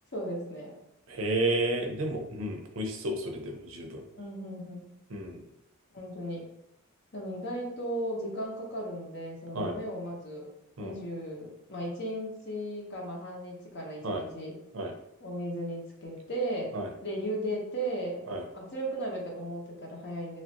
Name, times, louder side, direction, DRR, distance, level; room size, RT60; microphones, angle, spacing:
voice 1, 0.1-0.7 4.1-4.9 5.9-6.4 7.1-10.5 10.8-14.5 15.2-16.7 17.0-18.2 18.5-20.4, right 1 dB, 55° left, -2 dB, 0.8 m, -36 dB
voice 2, 1.1-4.0 5.1-5.4 9.5-9.8 10.8-11.0 14.0-14.3 14.7-14.9 16.7-16.9 18.3-18.4, right 1 dB, 65° right, 3 dB, 0.5 m, -31 dB
3.1 x 2.5 x 2.8 m, 0.83 s
head